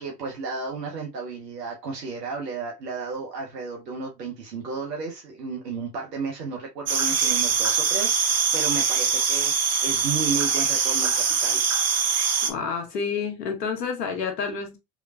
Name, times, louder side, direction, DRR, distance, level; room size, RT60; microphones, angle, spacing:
voice 1, 0.0-11.6, right 4 dB, 85° right, 0.8 m, -33 dB
sound 1, 6.9-12.5, right 6 dB, 35° right, 0.8 m, -23 dB
voice 2, 12.5-14.8, left 5 dB, 85° left, 0.9 m, -29 dB
3.1 x 2.9 x 2.3 m
hypercardioid pair, 65°, 47 cm